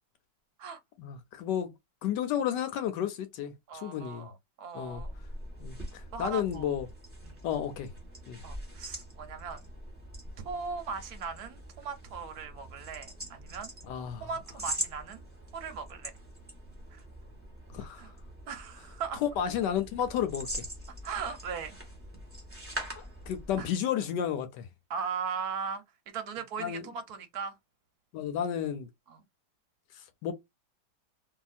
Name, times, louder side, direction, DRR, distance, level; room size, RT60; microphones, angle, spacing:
voice 1, 1.0-1.7 2.0-4.3 4.7-5.0 5.6-6.9 7.4-7.9 8.3-8.4 13.8-14.3 17.7-18.1 19.2-20.7 23.0-24.7 26.6-26.8 28.1-28.9 29.9-30.3, left 9 dB, 75° left, 1.2 m, -32 dB
voice 2, 3.7-5.1 6.1-6.7 7.2-7.4 8.4-9.7 10.4-13.7 14.2-15.2 15.5-16.1 16.9-17.0 18.0-18.1 18.5-19.2 21.0-21.8 23.6-23.7 24.9-27.6 29.1-29.2, right 6 dB, 65° right, 1.1 m, -38 dB
sound 1, 4.8-23.7, right 1 dB, 10° right, 1.0 m, -43 dB
2.8 x 2.8 x 2.4 m
omnidirectional pair, 2.0 m